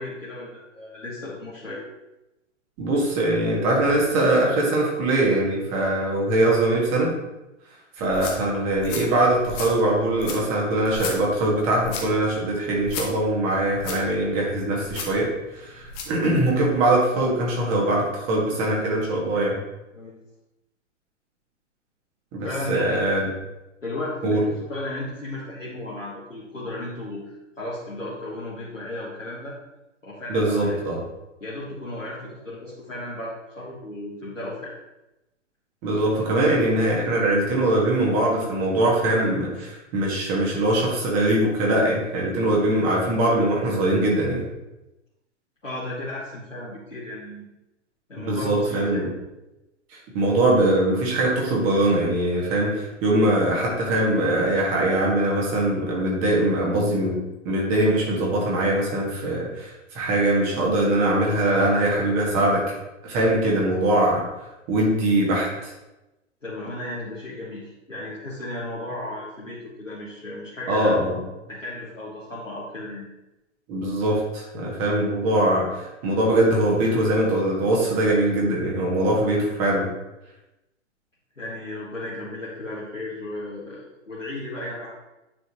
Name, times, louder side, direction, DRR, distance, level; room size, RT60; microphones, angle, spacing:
voice 1, 0.0-1.8 19.9-20.2 22.4-23.0 23.8-27.2 27.6-29.6 30.0-31.0 31.4-34.8 45.6-47.5 48.1-49.1 66.4-71.0 71.5-73.1 81.4-84.9, left 1 dB, 85° left, -8 dB, 1.7 m, -34 dB
voice 2, 2.8-7.1 8.0-19.6 22.3-23.2 24.2-24.4 30.3-31.0 35.8-44.5 48.2-49.1 50.1-57.2 57.5-62.6 63.0-64.2 64.7-65.7 70.7-71.2 73.7-79.9, right 1 dB, 30° right, -3 dB, 1.9 m, -22 dB
sound 1, 8.0-16.2, left 4 dB, 25° left, 1.0 m, -37 dB
9.4 x 4.6 x 3.1 m, 0.97 s
figure-of-eight pair, 115°, 37 cm